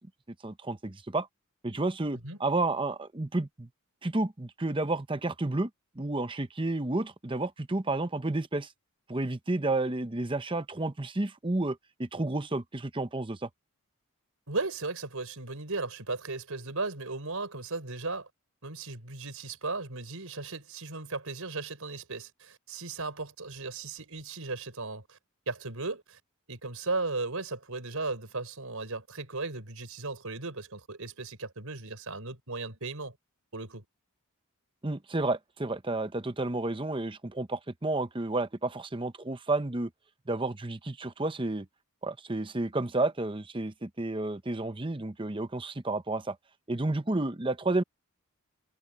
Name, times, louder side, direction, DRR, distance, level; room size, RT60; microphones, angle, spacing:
voice 1, 0.4-1.3 1.6-3.7 4.0-5.7 6.0-8.7 9.1-13.5 34.8-39.9 40.3-41.7 42.0-46.4 46.7-47.8, right 2 dB, 20° right, 0.8 m, -31 dB
voice 2, 14.5-18.3 18.6-25.2 25.5-26.2 26.5-33.2 33.5-33.8, right 3 dB, 70° right, 4.3 m, -36 dB
head